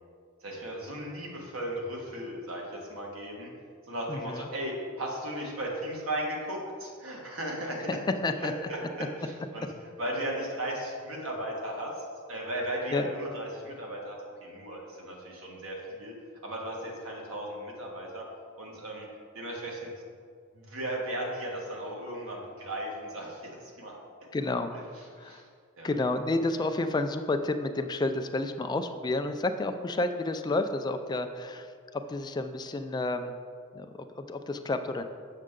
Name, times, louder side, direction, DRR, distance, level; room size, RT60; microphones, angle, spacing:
voice 1, 0.4-3.5 3.9-8.0 8.4-9.7 10.0-16.1 16.4-18.2 18.6-19.1 19.3-19.9 20.5-23.5 23.8-24.0 25.2-25.4 25.8-25.9, right 1 dB, 70° right, -1 dB, 1.5 m, -36 dB
voice 2, 4.1-4.5 7.9-8.0 8.2-8.5 12.9-13.1 24.3-24.7 25.2-25.4 25.8-31.7 31.9-33.3 33.7-35.0, left 2 dB, 20° left, 7 dB, 0.3 m, -30 dB
6.6 x 6.3 x 3.7 m, 2.1 s
head